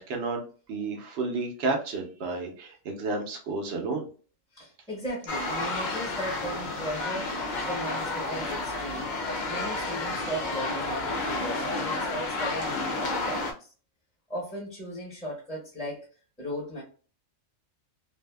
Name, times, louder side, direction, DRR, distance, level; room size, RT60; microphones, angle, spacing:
voice 1, 0.0-4.1, right 3 dB, 60° right, 0.9 m, -31 dB
voice 2, 4.5-9.2 9.5-13.7 14.3-16.1 16.4-16.8, equal, 5° left, 0.8 m, -37 dB
sound 1, 5.3-13.5, left 2 dB, 60° left, 0.5 m, -31 dB
2.6 x 2.4 x 2.2 m
omnidirectional pair, 1.3 m